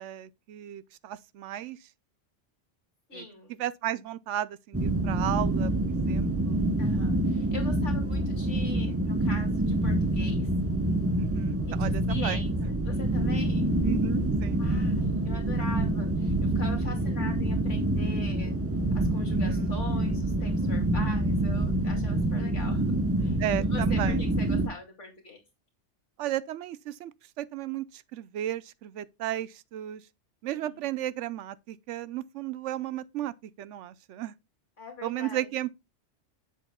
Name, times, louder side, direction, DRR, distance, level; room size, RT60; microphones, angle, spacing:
voice 1, 0.0-1.8 3.1-3.2 3.6-6.6 11.1-12.4 13.8-14.6 19.3-19.7 23.4-24.2 26.2-30.0 30.4-34.3 35.0-35.7, right 12 dB, 80° right, 0.9 m, -34 dB
voice 2, 3.1-3.6 6.8-10.5 11.7-13.7 14.6-18.6 18.9-22.9 23.2-23.4 23.7-25.4 30.5-30.9 34.8-35.5, left 3 dB, 85° left, 2.7 m, -43 dB
sound 1, 4.7-24.7, right 1 dB, 15° right, 0.7 m, -26 dB
7.6 x 7.5 x 2.2 m
omnidirectional pair, 1.2 m